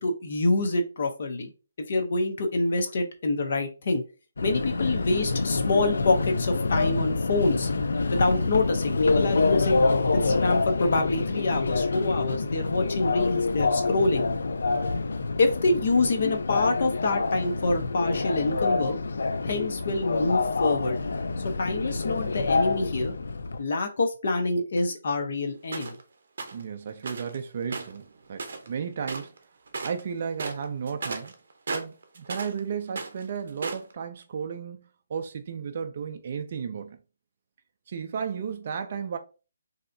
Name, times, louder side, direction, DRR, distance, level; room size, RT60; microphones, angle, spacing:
voice 1, 0.0-1.5 1.9-4.0 4.4-7.7 8.1-9.8 10.1-14.3 15.4-19.0 19.4-21.1 21.6-23.1 23.6-26.0, left 2 dB, 45° left, 0.6 m, -26 dB
Subway metro underground, 4.4-23.6, left 3 dB, 70° left, 0.3 m, -26 dB
sound 1, 25.7-26.0 26.4-26.6 27.0-27.4 27.7-28.8 29.0-29.4 29.7-30.0 30.3-32.6 32.9-33.9, right 4 dB, 50° right, 0.7 m, -35 dB
voice 2, 26.5-29.3 29.8-31.3 31.7-37.0 37.9-39.2, right 6 dB, 35° right, 0.3 m, -34 dB
3.3 x 2.7 x 2.6 m
hypercardioid pair, 175°, 0 cm